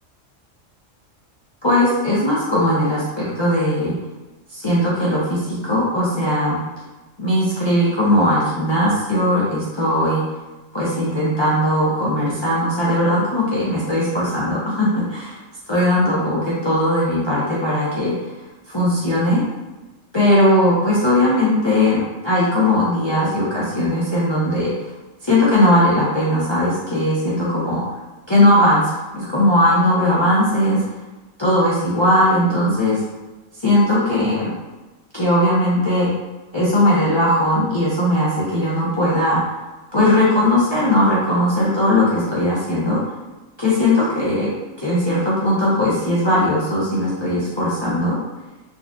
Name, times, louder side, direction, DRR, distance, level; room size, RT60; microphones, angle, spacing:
voice 1, 1.6-4.0 4.5-6.6 7.2-10.2 10.7-15.4 15.7-18.2 18.7-19.4 20.1-24.7 25.2-27.8 28.3-30.8 31.4-33.0 33.6-34.5 35.1-36.1 36.5-39.4 39.9-43.0 43.6-44.5 44.8-48.2, left 1 dB, 40° left, -8 dB, 0.4 m, -18 dB
3.8 x 2.2 x 2.4 m, 1.2 s
omnidirectional pair, 1.3 m